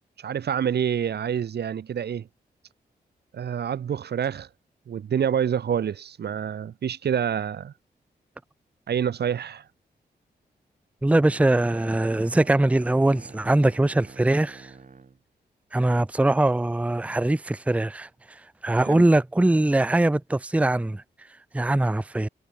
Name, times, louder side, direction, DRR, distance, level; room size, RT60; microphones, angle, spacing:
voice 1, 0.2-2.3 3.3-4.5 4.9-7.7 8.9-9.6 18.8-19.0, right 8 dB, 75° right, 1.1 m, -27 dB
voice 2, 11.0-14.7 15.7-18.1 18.6-21.0 21.5-22.3, right 2 dB, 10° right, 0.6 m, -22 dB
sound 1, 11.3-15.2, right 4 dB, 50° right, 7.1 m, -46 dB
cardioid pair, 70°, 17 cm